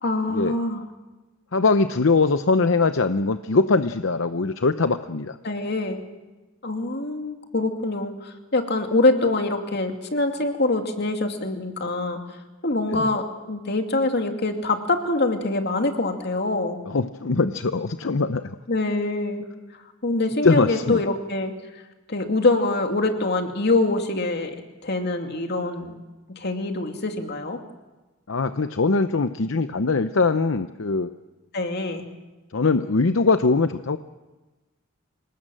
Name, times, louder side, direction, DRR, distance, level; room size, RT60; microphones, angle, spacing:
voice 1, 0.0-0.8 5.4-6.0 6.6-12.2 12.6-16.8 18.7-19.4 20.0-21.5 22.1-24.6 24.8-26.0 26.3-27.6 31.5-32.0, left 2 dB, 55° left, 4 dB, 2.5 m, -24 dB
voice 2, 1.5-5.4 12.9-13.1 16.9-18.6 20.4-21.0 28.3-31.1 32.5-34.0, left 3 dB, 75° left, 10 dB, 0.8 m, -22 dB
26.5 x 19.5 x 7.6 m, 1.1 s
head